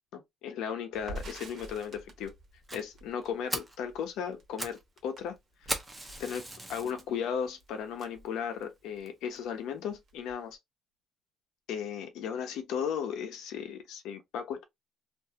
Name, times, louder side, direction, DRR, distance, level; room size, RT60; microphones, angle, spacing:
voice 1, 0.1-2.3 2.7-5.4 5.6-5.7 6.2-10.6 11.7-14.6, left 7 dB, 70° left, 0.7 m, -36 dB
Crackle, 0.9-9.0 9.3-9.5 9.8-10.5, right 1 dB, 40° right, 0.9 m, -48 dB
Fire, 2.7-2.8 3.2-3.3 3.5-3.8 4.3-4.8 5.1-5.2 5.7-7.0 7.6-7.7 8.3-8.4 8.6-8.7 9.1-9.2, right 1 dB, 5° right, 0.5 m, -37 dB
2.5 x 2.4 x 2.7 m
cardioid pair, 180°, 0 cm